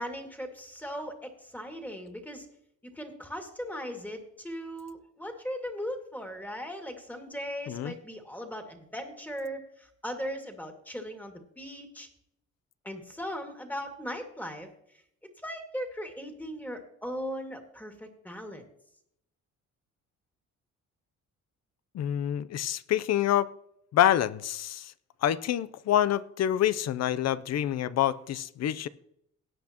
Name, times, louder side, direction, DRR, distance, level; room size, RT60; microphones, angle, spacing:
voice 1, 0.0-2.5 2.9-12.1 12.8-14.7 15.4-18.6, equal, 5° left, 3 dB, 2.1 m, -38 dB
voice 2, 21.9-23.5 23.9-24.9 25.2-28.9, left 11 dB, 60° left, 17 dB, 0.6 m, -27 dB
18.0 x 8.4 x 2.9 m, 0.74 s
cardioid pair, 90°, 30 cm